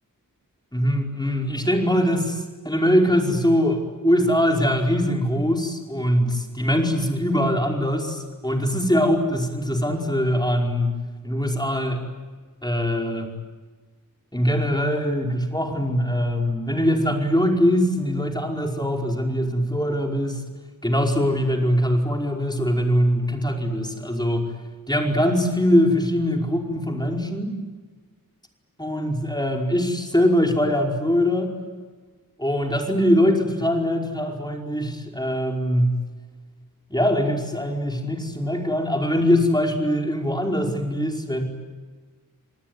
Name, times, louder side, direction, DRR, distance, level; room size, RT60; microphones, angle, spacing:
voice 1, 0.7-11.0 11.2-12.0 12.6-13.3 14.3-20.4 20.8-24.5 24.9-27.5 28.8-31.5 32.4-36.0 36.9-41.4, equal, 10° left, 1 dB, 5.0 m, -22 dB
28.5 x 19.5 x 9.6 m, 1.4 s
wide cardioid pair, 45°, 35 cm